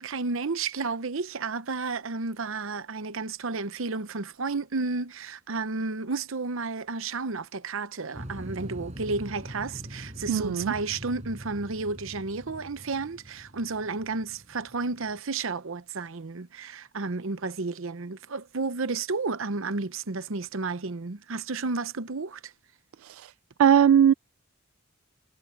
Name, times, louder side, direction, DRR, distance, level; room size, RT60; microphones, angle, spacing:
voice 1, 0.0-22.5, right 4 dB, 70° right, 0.9 m, -32 dB
sound 1, 8.1-15.2, equal, 35° right, 6.0 m, -43 dB
voice 2, 10.3-10.7 23.0-23.3 23.6-24.1, right 8 dB, 90° right, 0.3 m, -20 dB
head